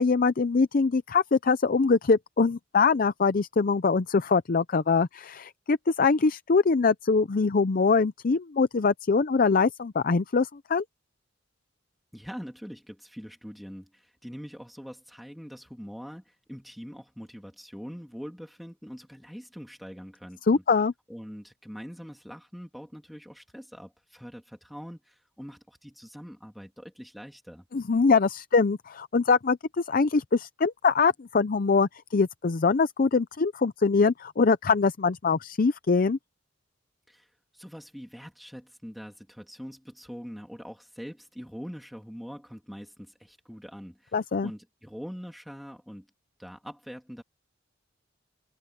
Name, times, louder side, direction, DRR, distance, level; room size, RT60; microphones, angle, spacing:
voice 1, 0.0-10.8 20.5-20.9 27.7-36.2 44.1-44.5, left 4 dB, 45° left, 0.5 m, -23 dB
voice 2, 12.1-20.6 21.1-27.6 37.1-46.1 46.4-47.2, equal, ahead, 2.5 m, -43 dB
head